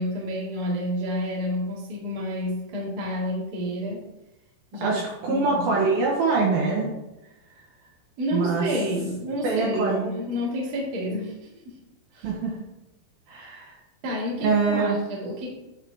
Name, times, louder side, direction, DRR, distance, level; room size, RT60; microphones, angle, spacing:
voice 1, 0.0-4.0 4.7-5.0 5.3-5.6 8.2-11.8 12.1-12.3 14.0-15.5, equal, 40° right, -5 dB, 1.5 m, -29 dB
voice 2, 4.8-6.9 8.3-8.7 9.4-10.1 12.2-12.5 13.3-13.8 14.4-15.0, right 4 dB, 70° right, -3 dB, 2.5 m, -24 dB
10.0 x 4.9 x 3.5 m, 0.97 s
omnidirectional pair, 5.3 m